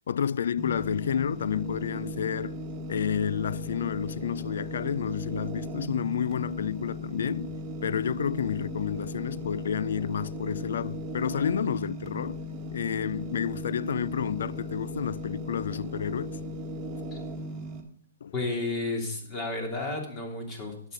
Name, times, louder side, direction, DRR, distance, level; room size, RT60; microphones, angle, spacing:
voice 1, 0.0-2.6 2.9-12.4 12.7-16.3 18.2-18.3, left 8 dB, 70° left, 0.3 m, -30 dB
sound 1, 0.6-17.8, left 1 dB, 20° right, 1.8 m, -37 dB
voice 2, 18.3-20.9, left 2 dB, 25° left, 2.9 m, -32 dB
11.5 x 8.6 x 3.9 m
hypercardioid pair, 150°, 0 cm